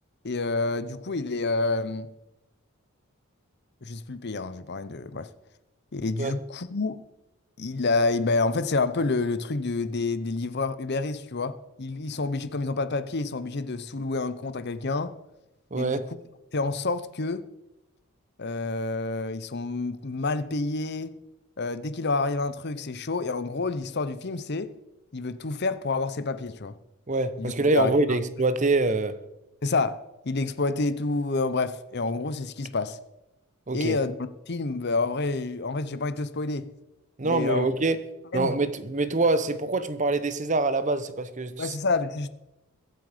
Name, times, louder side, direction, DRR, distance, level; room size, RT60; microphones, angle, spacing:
voice 1, 0.2-2.1 3.8-5.3 5.9-7.0 7.6-15.2 15.7-16.0 16.5-17.5 18.4-21.2 21.6-24.7 25.1-26.7 27.4-28.2 29.6-30.0 30.2-33.0 33.7-34.1 34.5-36.7 37.2-37.7 38.3-38.5 41.6-42.3, left 3 dB, 50° left, 0.8 m, -28 dB
voice 2, 15.7-16.0 27.1-29.2 33.7-34.0 37.2-38.0 38.3-41.7, right 3 dB, 35° right, 0.8 m, -25 dB
22.5 x 7.7 x 5.0 m
head